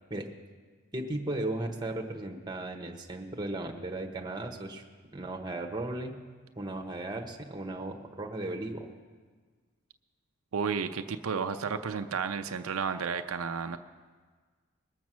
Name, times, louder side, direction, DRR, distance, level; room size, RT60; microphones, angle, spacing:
voice 1, 0.9-4.8 5.1-6.1 6.6-8.9, right 2 dB, 20° right, 3 dB, 1.1 m, -36 dB
voice 2, 10.5-13.8, right 6 dB, 80° right, 8 dB, 0.5 m, -32 dB
20.5 x 7.3 x 6.2 m, 1.5 s
head